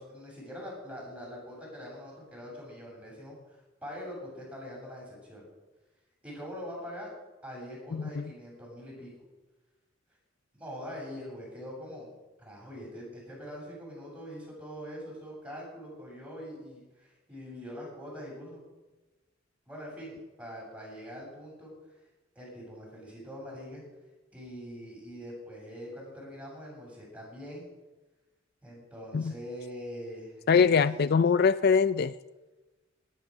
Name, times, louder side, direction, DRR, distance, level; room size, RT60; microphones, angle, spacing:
voice 1, 0.0-5.5 6.2-7.1 7.4-9.1 10.5-12.1 12.4-18.6 19.7-21.7 22.3-23.8 24.3-27.7 28.6-30.8, equal, 5° right, -3 dB, 7.5 m, -43 dB
voice 2, 7.9-8.3 29.1-29.3 30.5-32.1, left 6 dB, 55° left, 15 dB, 0.4 m, -23 dB
18.0 x 10.5 x 6.5 m, 1.1 s
head